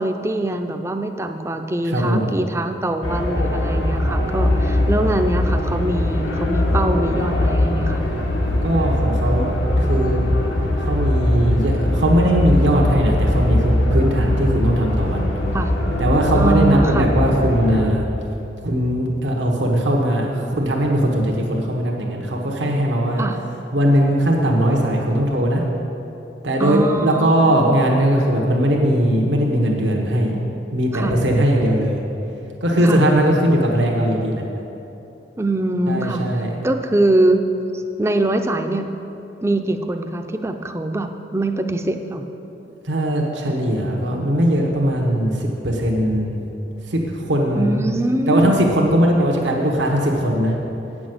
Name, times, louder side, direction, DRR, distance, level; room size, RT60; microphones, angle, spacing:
voice 1, 0.0-8.0 15.5-15.7 16.4-17.1 23.2-23.4 26.6-27.9 30.9-31.1 32.8-33.0 35.4-36.2 36.6-37.4 37.7-38.9 39.4-42.3 47.6-48.5, right 2 dB, 15° right, 6 dB, 0.4 m, -23 dB
voice 2, 1.8-2.3 8.6-9.5 9.8-10.3 10.7-15.3 16.0-18.1 18.6-23.2 23.7-25.6 26.4-30.4 30.7-32.0 32.6-34.4 35.9-36.6 42.8-46.4 46.9-47.7 48.3-50.5, equal, 85° right, -1 dB, 1.2 m, -19 dB
sound 1, 3.0-17.8, left 1 dB, 90° left, 1.3 m, -21 dB
8.7 x 6.2 x 7.8 m, 2.9 s
head